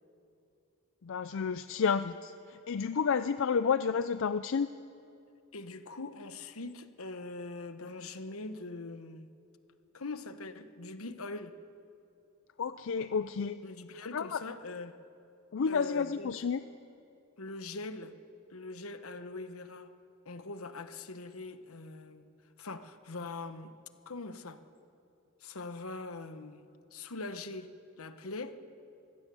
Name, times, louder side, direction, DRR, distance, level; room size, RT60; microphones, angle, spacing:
voice 1, 1.0-4.7 12.6-13.6 14.1-14.4 15.5-16.6, left 6 dB, 65° left, 12 dB, 0.4 m, -30 dB
voice 2, 5.5-9.3 9.9-11.6 13.6-15.0 15.7-16.3 17.4-18.1 18.5-19.9 20.2-22.3 22.6-23.7 24.1-24.6 25.4-26.6 26.9-28.6, left 3 dB, 80° left, 10 dB, 1.1 m, -42 dB
24.5 x 16.0 x 7.0 m, 2.6 s
head